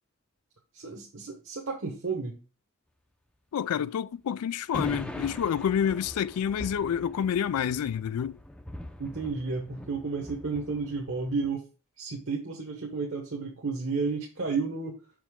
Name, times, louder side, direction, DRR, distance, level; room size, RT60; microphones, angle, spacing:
voice 1, 0.7-2.3 9.0-11.6 12.0-14.9, right 4 dB, 60° right, 1.0 m, -32 dB
voice 2, 3.5-8.4, left 8 dB, 90° left, 0.3 m, -28 dB
sound 1, 4.7-11.5, left 1 dB, 5° left, 0.5 m, -42 dB
5.7 x 5.0 x 3.5 m
head